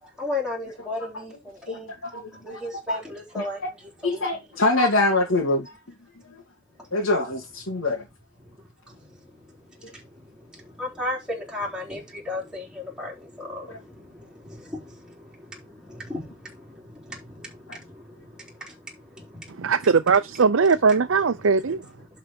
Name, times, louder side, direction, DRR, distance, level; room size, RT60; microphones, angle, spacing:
voice 1, 0.0-1.9 2.3-4.3 6.8-6.9 7.7-7.9 8.4-19.8 22.0-22.2, left 2 dB, 5° right, 4.0 m, -36 dB
voice 2, 1.7-2.6 2.9-3.0 3.3-3.5 4.0-5.7 6.2-6.4 6.9-8.0 9.8-9.9 13.7-13.8 17.7-17.8, left 2 dB, 80° left, 2.4 m, -25 dB
voice 3, 19.6-21.9, right 5 dB, 75° right, 0.6 m, -20 dB
11.0 x 4.8 x 4.5 m
head